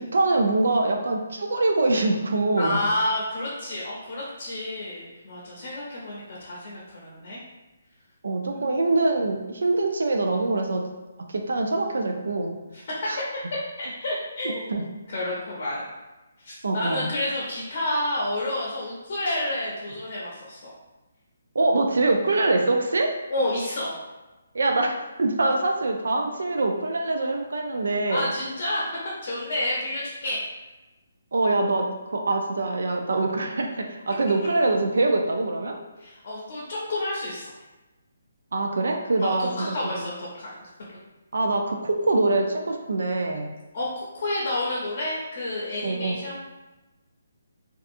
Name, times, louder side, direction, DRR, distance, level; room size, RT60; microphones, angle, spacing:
voice 1, 0.1-2.8 8.2-10.8 11.3-12.6 13.1-13.2 14.4-14.8 16.6-17.1 21.5-23.1 24.5-28.3 31.3-35.8 38.5-40.1 41.3-43.5 45.8-46.2, right 2 dB, 80° right, 3 dB, 0.3 m, -24 dB
voice 2, 2.6-7.4 8.5-8.8 13.2-13.3 13.8-14.6 15.1-15.9 16.4-20.7 23.3-23.9 28.1-30.4 36.0-37.5 39.2-40.5 43.7-46.4, left 1 dB, 50° left, -6 dB, 0.6 m, -30 dB
2.6 x 2.3 x 2.5 m, 1.1 s
hypercardioid pair, 165°, 0 cm